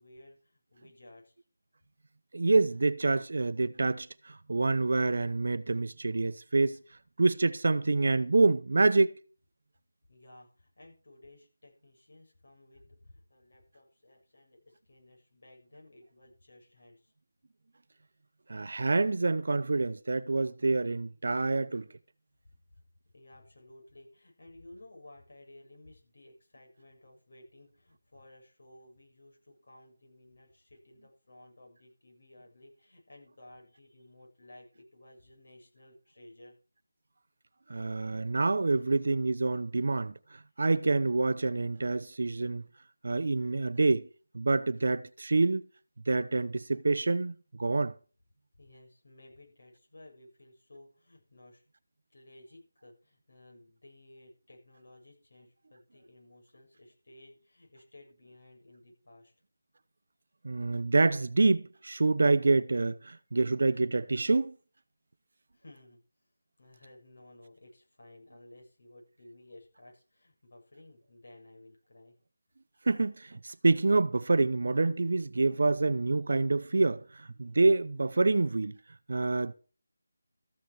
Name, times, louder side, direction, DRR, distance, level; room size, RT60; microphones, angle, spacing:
voice 1, 0.0-1.3 10.1-17.1 23.1-36.6 37.7-38.1 39.7-39.8 40.6-40.7 48.5-51.6 52.1-59.3 65.5-66.0 66.6-72.2, left 1 dB, 55° left, 7.6 m, -56 dB
voice 2, 2.3-6.8 7.2-9.2 18.5-21.9 37.7-42.6 43.0-44.1 44.3-45.7 46.1-47.9 60.4-64.6 72.9-78.8 79.1-79.5, right 3 dB, 55° right, 0.7 m, -27 dB
14.0 x 9.8 x 4.7 m
figure-of-eight pair, 175°, 0 cm